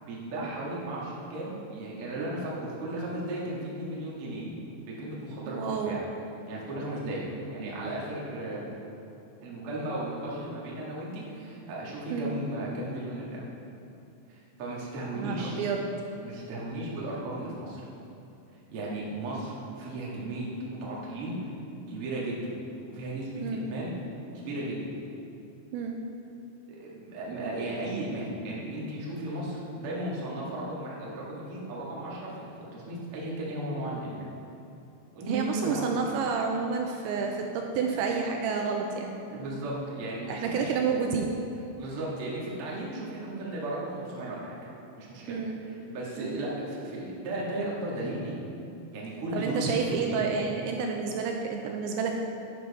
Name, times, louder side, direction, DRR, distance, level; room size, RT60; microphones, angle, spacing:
voice 1, 0.0-4.4 4.9-6.0 6.5-7.2 7.5-8.6 9.4-13.4 14.3-15.6 16.2-17.8 18.7-21.3 21.9-22.5 22.9-23.9 24.3-24.8 26.7-34.2 35.1-35.8 39.2-40.7 41.8-44.5 45.0-45.4 45.7-48.4 48.9-50.3, right 1 dB, 55° right, -5 dB, 1.6 m, -35 dB
voice 2, 5.5-6.0 12.1-12.3 15.2-15.8 23.4-23.7 25.7-26.0 35.3-39.5 40.3-41.3 45.3-45.6 46.2-46.4 49.3-52.2, right 5 dB, 80° right, 2 dB, 2.8 m, -30 dB
11.0 x 9.4 x 4.2 m, 2.8 s
omnidirectional pair, 5.5 m